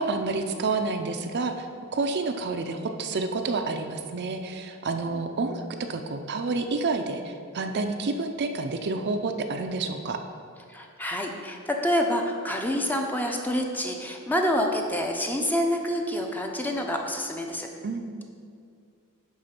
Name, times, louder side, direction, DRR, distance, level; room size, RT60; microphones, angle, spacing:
voice 1, 0.0-5.6 5.9-10.2 17.8-18.2, right 3 dB, 50° right, 6 dB, 0.5 m, -29 dB
voice 2, 10.7-17.7, equal, 10° left, 2 dB, 0.7 m, -27 dB
10.5 x 3.8 x 5.8 m, 2.3 s
head